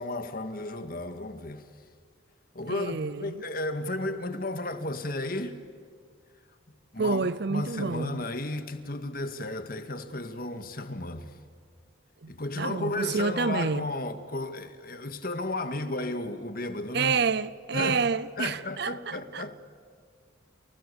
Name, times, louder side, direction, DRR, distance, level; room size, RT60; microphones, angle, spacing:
voice 1, 0.0-1.6 2.5-5.6 6.9-11.3 12.3-17.2 17.7-18.0 18.4-19.6, left 2 dB, 45° left, 2.0 m, -33 dB
voice 2, 2.6-3.4 7.0-8.2 12.2-12.3 12.6-13.9 16.9-19.4, right 5 dB, 55° right, 0.6 m, -29 dB
29.0 x 29.0 x 7.1 m
head